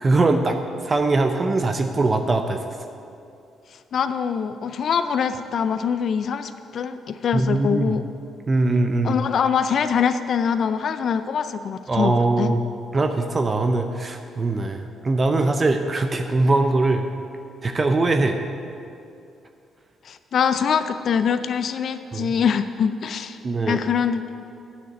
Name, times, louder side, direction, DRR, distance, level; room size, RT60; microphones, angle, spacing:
voice 1, 0.0-2.8 7.3-7.9 8.5-9.2 11.9-12.6 12.9-17.0 17.6-18.4 22.1-22.3 23.4-23.8, right 2 dB, 30° right, 6 dB, 0.6 m, -21 dB
voice 2, 3.7-8.0 9.0-12.6 20.0-23.4 23.7-24.2, left 7 dB, 60° left, 10 dB, 0.4 m, -24 dB
9.3 x 6.4 x 8.1 m, 2.6 s
cardioid pair, 90°, 0 cm